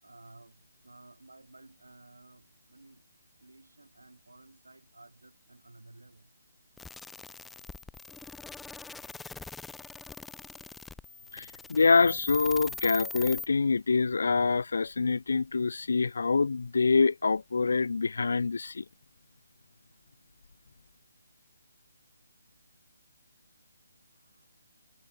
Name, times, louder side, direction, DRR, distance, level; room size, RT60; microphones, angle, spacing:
voice 1, 0.0-3.0 3.4-6.3 7.6-7.7 24.2-24.5, right 2 dB, 75° right, 7.0 m, -55 dB
sound 1, 6.8-13.5, left 4 dB, 5° left, 0.6 m, -42 dB
voice 2, 11.3-18.8, left 4 dB, 60° left, 0.5 m, -25 dB
figure-of-eight pair, 145°, 0 cm